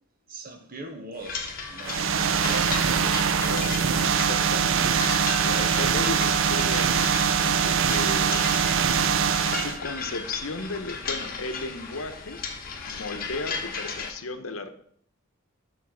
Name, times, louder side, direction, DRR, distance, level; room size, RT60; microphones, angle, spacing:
voice 1, 0.3-2.8, right 2 dB, 40° right, 1.3 m, -40 dB
sound 1, 1.2-14.1, left 5 dB, 45° left, 1.2 m, -35 dB
sound 2, 1.8-9.8, right 7 dB, 70° right, 0.5 m, -23 dB
voice 2, 3.4-7.0 7.3-8.5 9.6-12.4 12.9-14.7, left 3 dB, 80° left, 0.9 m, -35 dB
7.2 x 6.2 x 6.2 m
head